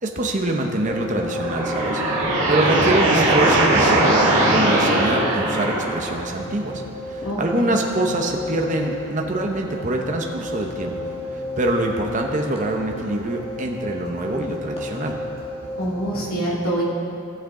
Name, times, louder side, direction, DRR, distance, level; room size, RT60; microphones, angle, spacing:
voice 1, 0.0-2.0 2.5-4.2 4.5-11.1 11.3-15.2, right 1 dB, 35° right, 1 dB, 0.8 m, -25 dB
sound 1, 0.8-16.3, left 1 dB, 30° left, 1.6 m, -33 dB
sound 2, 1.2-6.2, right 1 dB, 65° right, 1.8 m, -19 dB
voice 2, 7.2-7.8 15.8-16.8, right 1 dB, 85° left, -5 dB, 2.4 m, -25 dB
16.5 x 6.2 x 3.7 m, 2.7 s
head